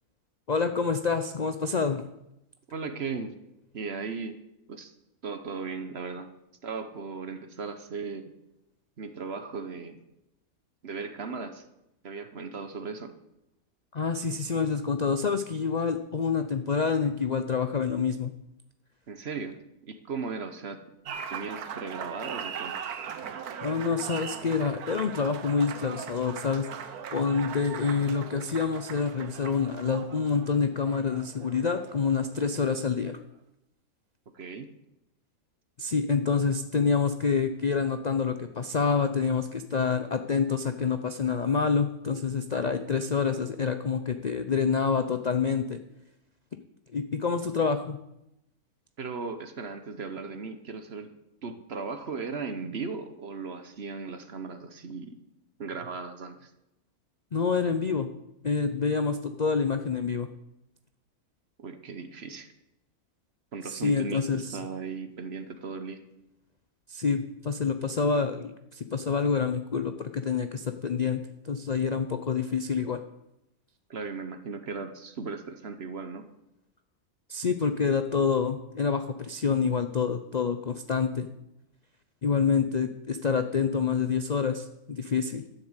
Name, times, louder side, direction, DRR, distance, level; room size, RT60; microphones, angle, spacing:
voice 1, 0.5-2.0 13.9-18.3 23.6-33.2 35.8-45.8 46.9-48.0 57.3-58.1 58.4-60.3 63.6-64.6 66.9-73.0 77.3-81.3 82.2-85.4, left 5 dB, 50° left, 8 dB, 0.5 m, -27 dB
voice 2, 2.7-3.4 3.7-4.4 4.7-4.9 5.2-6.3 6.6-8.2 9.0-10.0 10.8-11.6 12.0-13.1 19.1-19.6 19.8-20.8 21.3-22.8 34.3-34.7 49.0-51.1 51.4-55.2 55.6-56.5 61.6-62.5 63.5-66.0 73.9-76.3, right 4 dB, 50° right, 9 dB, 1.1 m, -37 dB
Applause, 21.1-32.8, right 7 dB, 85° right, 1.5 m, -40 dB
12.0 x 7.2 x 8.1 m, 0.87 s
omnidirectional pair, 1.6 m